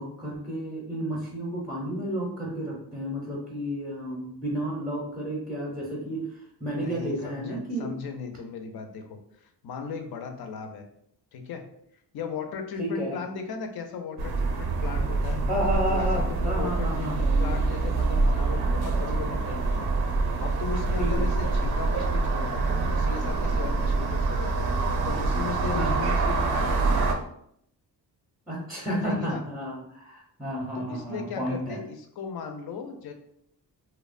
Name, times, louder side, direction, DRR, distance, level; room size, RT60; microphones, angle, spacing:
voice 1, 0.0-7.9 12.8-13.2 15.5-17.2 21.0-21.3 25.7-25.9 28.5-31.8, equal, ahead, -4 dB, 0.5 m, -31 dB
voice 2, 6.8-10.8 11.3-11.6 12.1-15.4 15.9-19.9 20.4-27.0 28.9-29.4 30.9-33.1, left 6 dB, 70° left, 5 dB, 0.5 m, -37 dB
sound 1, 14.2-27.1, right 3 dB, 70° right, 0.5 m, -25 dB
2.8 x 2.0 x 2.4 m, 0.71 s
cardioid pair, 115°, 39 cm